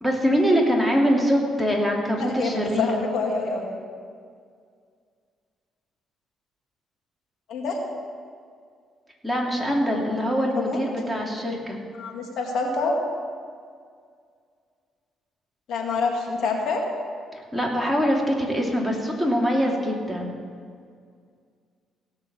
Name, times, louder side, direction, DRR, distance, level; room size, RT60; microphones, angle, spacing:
voice 1, 0.0-3.0 9.2-11.8 17.3-20.4, equal, ahead, -1 dB, 2.6 m, -23 dB
voice 2, 2.2-3.8 7.5-7.8 10.5-10.8 12.0-13.0 15.7-16.8, left 4 dB, 70° left, 1 dB, 2.1 m, -27 dB
16.5 x 6.7 x 7.7 m, 2.1 s
cardioid pair, 90°, 0 cm